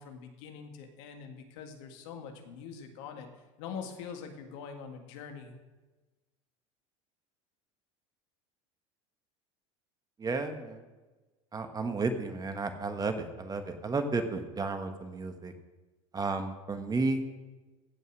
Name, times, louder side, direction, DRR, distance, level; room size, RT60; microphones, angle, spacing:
voice 1, 0.0-5.5, left 6 dB, 70° left, 5 dB, 1.8 m, -44 dB
voice 2, 10.2-10.8 11.5-15.5 16.1-17.2, right 3 dB, 20° right, 7 dB, 1.2 m, -32 dB
15.5 x 5.5 x 6.2 m, 1.2 s
hypercardioid pair, 90°, 17 cm